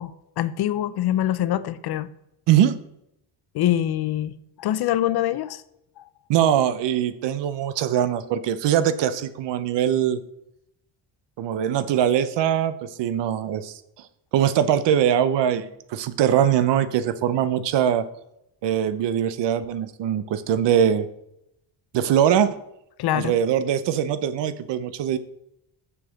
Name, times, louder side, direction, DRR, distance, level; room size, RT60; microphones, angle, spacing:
voice 1, 0.0-2.1 3.5-5.6 6.0-6.1 23.0-23.3, left 12 dB, 55° left, 15 dB, 0.6 m, -24 dB
voice 2, 6.3-10.2 11.4-13.7 14.3-18.0 18.6-21.1 21.9-22.6 23.1-25.2, right 9 dB, 60° right, 13 dB, 0.8 m, -22 dB
7.0 x 6.8 x 6.4 m, 0.83 s
cardioid pair, 140°, 47 cm